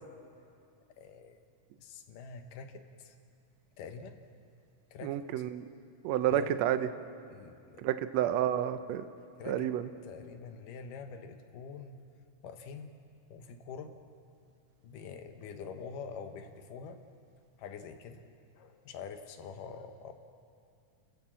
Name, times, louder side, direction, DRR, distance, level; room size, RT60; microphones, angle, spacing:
voice 1, 1.0-1.4 1.8-3.1 3.8-4.2 4.9-5.2 6.3-6.7 7.3-7.8 9.4-9.7 10.0-12.0 12.4-12.9 13.3-13.9 14.8-17.0 17.6-18.2 18.6-20.1, left 5 dB, 80° left, 7 dB, 2.8 m, -45 dB
voice 2, 5.0-5.7 6.0-6.9 7.8-9.1 9.5-9.9, right 11 dB, 75° right, 10 dB, 1.7 m, -30 dB
29.5 x 14.5 x 7.5 m, 2.5 s
omnidirectional pair, 3.7 m